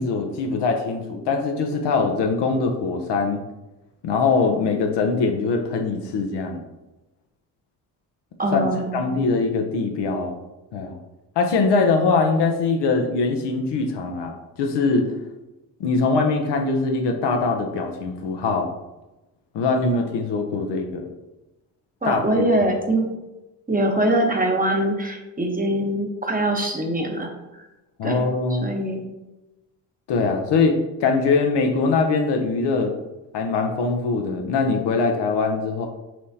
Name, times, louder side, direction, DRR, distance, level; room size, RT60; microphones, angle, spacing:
voice 1, 0.0-3.4 4.0-6.6 8.5-8.6 8.9-10.4 10.7-11.0 11.4-15.1 15.8-18.7 19.5-21.1 22.0-22.4 28.0-28.7 30.1-32.9 33.3-35.9, left 4 dB, 65° left, 3 dB, 0.8 m, -22 dB
voice 2, 8.4-9.1 22.0-23.1 23.7-27.3 27.5-27.6 28.0-28.2 28.6-29.1, right 1 dB, 20° right, 2 dB, 1.0 m, -23 dB
5.9 x 3.1 x 2.8 m, 1.0 s
hypercardioid pair, 55°, 45 cm